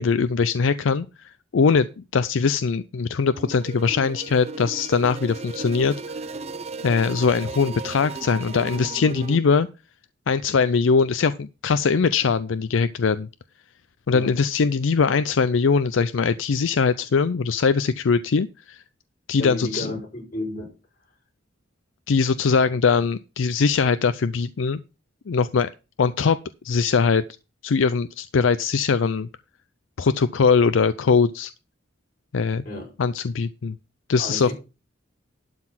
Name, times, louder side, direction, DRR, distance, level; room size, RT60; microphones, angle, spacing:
voice 1, 0.0-1.9 2.1-5.9 6.8-9.7 10.3-13.3 14.1-18.8 19.3-19.9 22.1-24.8 25.3-25.7 26.0-26.4 26.6-27.2 27.6-29.3 30.0-31.5 32.3-32.6 33.0-33.8 34.1-34.5, left 5 dB, 80° left, 0.5 m, -21 dB
sound 1, 3.3-9.4, right 4 dB, 35° right, 0.6 m, -35 dB
voice 2, 19.4-20.7 32.6-32.9 34.2-34.5, left 1 dB, 45° left, 5.4 m, -32 dB
12.0 x 4.1 x 7.3 m
head